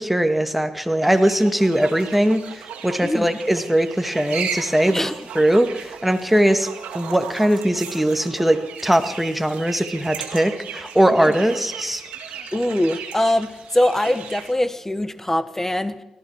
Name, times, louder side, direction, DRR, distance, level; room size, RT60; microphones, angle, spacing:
voice 1, 0.0-5.1 5.4-6.7 6.9-12.0, right 1 dB, 5° right, 8 dB, 1.9 m, -20 dB
sound 1, 1.0-14.5, right 7 dB, 85° right, 1.7 m, -36 dB
voice 2, 3.0-3.4 4.9-5.1 12.5-16.0, left 1 dB, 15° left, 13 dB, 1.3 m, -22 dB
18.5 x 14.0 x 4.8 m, 0.99 s
supercardioid pair, 45°, 2 cm